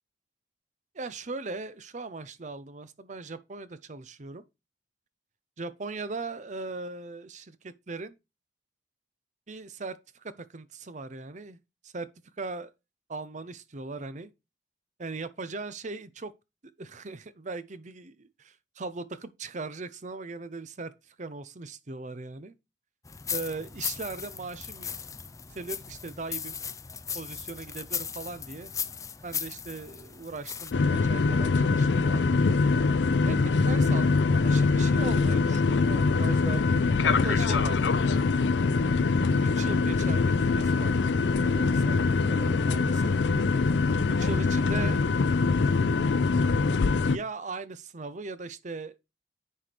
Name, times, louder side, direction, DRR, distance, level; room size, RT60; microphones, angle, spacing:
voice 1, 0.9-4.4 5.6-8.2 9.5-11.6 11.8-12.1 12.4-12.7 13.1-14.3 15.0-16.3 16.8-22.5 23.3-24.9 25.5-26.6 27.1-28.7 29.2-32.4 33.3-36.7 37.0-38.3 39.4-41.0 41.4-42.0 42.3-43.2 44.2-45.0 47.1-48.9, right 3 dB, 45° right, 0.7 m, -39 dB
sound 1, 23.0-30.7, left 7 dB, 20° left, 0.4 m, -37 dB
sound 2, 30.7-47.2, left 4 dB, 80° left, 0.5 m, -23 dB
9.9 x 4.8 x 3.4 m
head